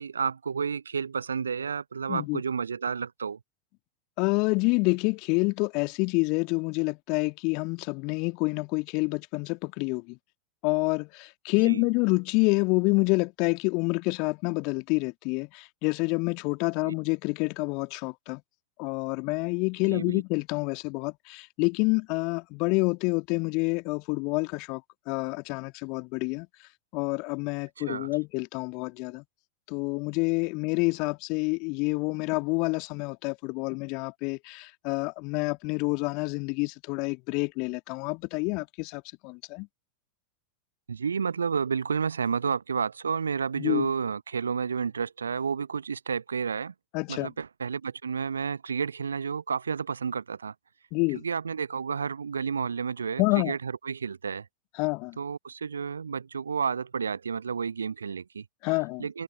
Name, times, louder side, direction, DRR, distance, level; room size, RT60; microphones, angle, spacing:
voice 1, 0.0-3.4 11.6-11.9 16.8-16.9 19.9-20.2 27.8-28.1 40.9-46.7 47.1-50.5 51.1-54.5 55.2-58.4 59.0-59.2, right 6 dB, 70° right, 1.0 m, -31 dB
voice 2, 2.1-2.4 4.2-10.2 10.6-18.4 18.8-24.8 25.1-26.5 26.9-29.2 29.7-39.7 43.6-43.9 46.9-47.3 50.9-51.2 53.2-53.5 54.8-55.2 58.6-59.1, left 30 dB, 45° left, 2.1 m, -28 dB
figure-of-eight pair, 90°, 0 cm